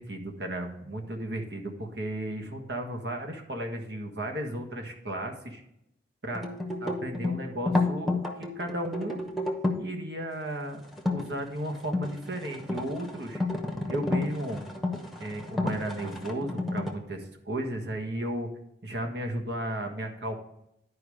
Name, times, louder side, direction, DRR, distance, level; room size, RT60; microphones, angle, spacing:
voice 1, 0.0-5.6 6.2-6.4 6.8-9.2 9.8-13.4 13.9-14.6 15.2-18.5 18.8-20.4, right 1 dB, 70° right, 3 dB, 1.5 m, -34 dB
sound 1, 6.3-9.9 10.9-11.2 11.8-16.9, left 2 dB, ahead, 0.9 m, -31 dB
10.5 x 4.9 x 4.9 m, 0.80 s
head